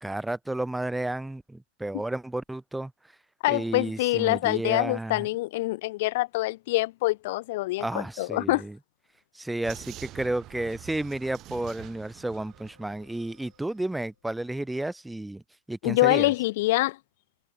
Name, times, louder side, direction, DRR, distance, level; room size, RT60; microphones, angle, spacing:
voice 1, 0.0-2.9 3.5-5.3 7.8-8.8 9.3-15.4 15.7-16.3, right 1 dB, 5° right, 0.9 m, -32 dB
voice 2, 3.4-8.6 15.8-17.0, left 19 dB, 50° left, 0.3 m, -25 dB
sound 1, 9.6-14.3, left 7 dB, 70° left, 4.5 m, -67 dB
Vehicle, 9.6-13.6, right 15 dB, 35° right, 1.2 m, -46 dB
figure-of-eight pair, 90°, 0 cm